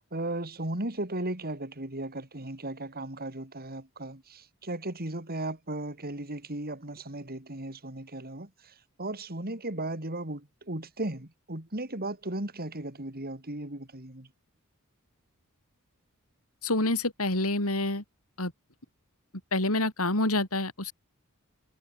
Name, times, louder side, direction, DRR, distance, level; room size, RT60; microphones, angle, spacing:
voice 1, 0.1-14.3, right 1 dB, 45° right, 4.1 m, -36 dB
voice 2, 16.6-18.0 18.4-18.5 19.5-20.9, left 2 dB, 75° left, 5.6 m, -27 dB
head